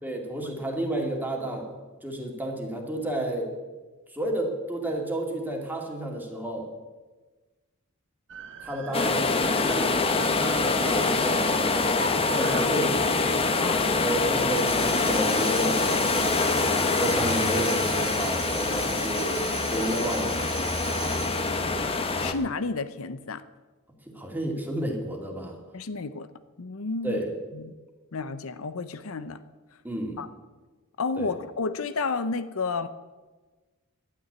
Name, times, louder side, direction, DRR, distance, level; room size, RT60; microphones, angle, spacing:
voice 1, 0.0-1.7 2.0-3.5 4.1-6.7 8.6-10.0 10.8-12.0 12.3-13.1 14.0-15.8 16.6-20.5 24.0-25.6 27.0-27.3 29.8-30.2 31.2-31.4, right 1 dB, 10° right, 1 dB, 2.4 m, -31 dB
sound 1, 8.3-13.8 14.9-16.5, right 5 dB, 60° right, 1.1 m, -42 dB
sound 2, 8.9-22.3, left 3 dB, 25° left, 1.1 m, -25 dB
Tambourine, 14.5-21.6, right 8 dB, 85° right, 1.9 m, -37 dB
voice 2, 22.2-23.4 25.7-26.3 26.6-27.2 27.5-27.7 28.1-29.4 30.2-30.3 31.0-32.9, left 4 dB, 70° left, 11 dB, 0.7 m, -31 dB
12.0 x 9.5 x 9.6 m, 1.3 s
head